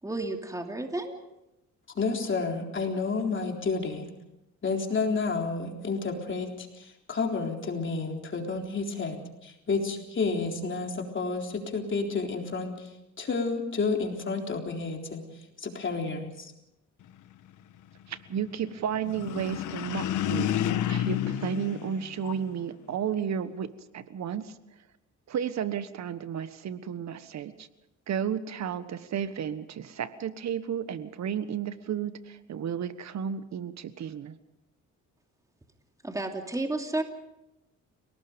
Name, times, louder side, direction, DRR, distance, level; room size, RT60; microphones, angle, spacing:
voice 1, 0.0-1.1 36.0-37.0, right 2 dB, 10° right, 3 dB, 2.8 m, -31 dB
voice 2, 2.0-4.1 4.6-12.9 13.2-15.2 15.6-16.5, left 4 dB, 40° left, 2 dB, 3.9 m, -30 dB
voice 3, 18.1-20.6 20.9-24.5 25.3-27.7 28.1-34.4, right 8 dB, 65° right, 12 dB, 1.4 m, -33 dB
sound 1, 19.0-22.6, left 11 dB, 80° left, 1.4 m, -30 dB
30.0 x 18.5 x 5.3 m, 0.90 s
cardioid pair, 90°, 30 cm